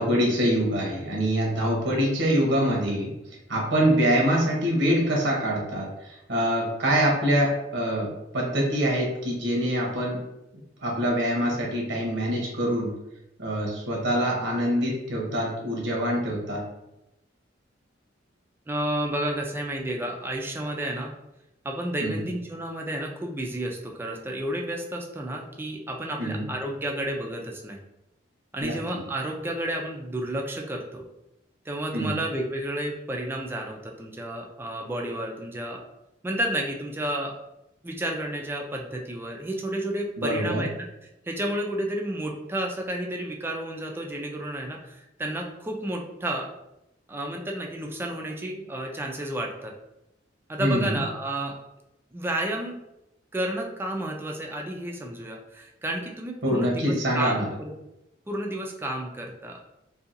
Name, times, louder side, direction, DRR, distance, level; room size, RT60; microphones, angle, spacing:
voice 1, 0.0-3.1 3.5-10.2 10.8-12.9 13.4-16.6 22.0-22.2 26.2-26.4 28.6-28.8 31.9-32.2 40.2-40.6 50.6-51.0 56.4-57.5, equal, 70° right, -2 dB, 0.8 m, -25 dB
voice 2, 18.7-21.1 21.6-27.8 28.5-31.0 31.7-35.8 36.2-37.3 37.8-40.9 41.3-46.5 47.1-49.7 50.5-51.5 52.1-52.8 53.3-57.7 58.3-59.6, right 1 dB, 10° right, 1 dB, 0.3 m, -31 dB
2.7 x 2.3 x 2.5 m, 0.90 s
head